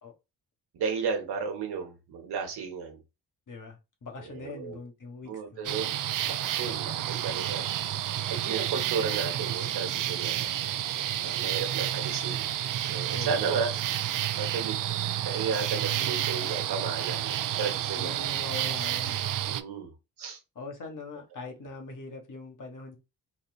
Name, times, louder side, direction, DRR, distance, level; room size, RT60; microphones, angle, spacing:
voice 1, 0.7-3.0 4.3-4.8 5.2-7.7 8.3-10.5 11.2-12.5 12.9-13.7 14.4-14.8 15.2-18.2 19.5-19.9 20.2-20.4, right 5 dB, 70° right, 1.2 m, -33 dB
voice 2, 3.5-5.7 6.5-6.9 13.1-13.6 15.9-16.4 17.9-19.3 20.5-23.0, left 3 dB, 50° left, 1.4 m, -42 dB
sound 1, 5.6-19.6, right 12 dB, 50° right, 0.5 m, -30 dB
4.2 x 2.4 x 2.3 m
supercardioid pair, 50°, 41 cm